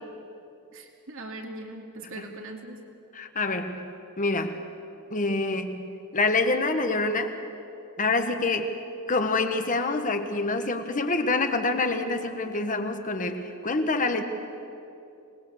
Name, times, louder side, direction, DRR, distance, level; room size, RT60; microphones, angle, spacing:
voice 1, 0.7-2.8, right 2 dB, 65° right, 2 dB, 2.6 m, -40 dB
voice 2, 3.1-4.6 5.1-7.3 8.0-8.8 9.1-14.2, left 3 dB, 35° left, 7 dB, 1.3 m, -26 dB
25.5 x 19.5 x 7.2 m, 2.7 s
head